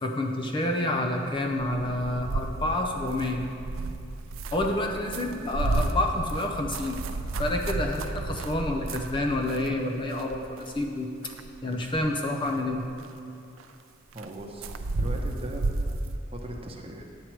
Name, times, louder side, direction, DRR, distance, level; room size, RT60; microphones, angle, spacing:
voice 1, 0.0-3.5 4.5-7.0 7.4-11.1 11.6-12.8, left 1 dB, 25° left, 3 dB, 0.5 m, -28 dB
sound 1, 1.5-9.8 10.1-10.9 11.2-12.1 12.4-13.1 13.6-13.7 14.1-16.2, right 2 dB, 85° right, 0.5 m, -32 dB
voice 2, 14.1-14.7 15.0-15.9 16.3-17.0, right 1 dB, 30° right, 1 dB, 0.9 m, -39 dB
9.8 x 7.7 x 4.5 m, 2.6 s
head